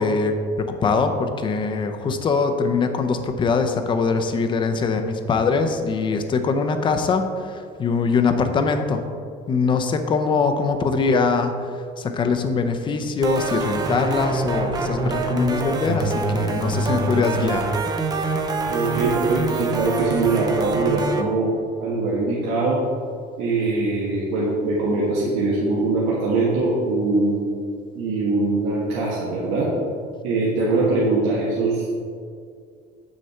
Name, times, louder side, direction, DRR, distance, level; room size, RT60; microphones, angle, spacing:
voice 1, 0.0-9.0 9.5-17.7, left 4 dB, 25° left, 7 dB, 0.6 m, -22 dB
sound 1, 13.2-21.2, right 3 dB, 20° right, 0.6 m, -25 dB
voice 2, 18.7-21.5 21.8-22.8 23.4-27.4 27.9-29.7 30.2-31.8, right 3 dB, 85° right, -6 dB, 1.7 m, -22 dB
8.2 x 6.5 x 4.4 m, 2.2 s
cardioid pair, 155°, 18 cm